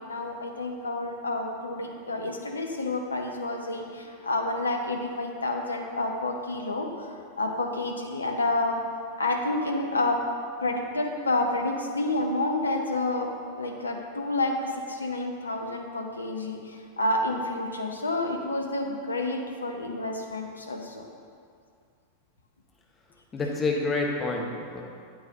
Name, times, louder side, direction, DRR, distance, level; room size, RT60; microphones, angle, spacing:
voice 1, 0.0-7.1 7.4-8.8 9.2-10.2 10.6-21.1, left 2 dB, 75° left, 3 dB, 0.8 m, -29 dB
voice 2, 23.3-24.8, left 3 dB, 20° left, -1 dB, 1.2 m, -28 dB
8.9 x 8.5 x 2.9 m, 2.2 s
figure-of-eight pair, 90°, 0 cm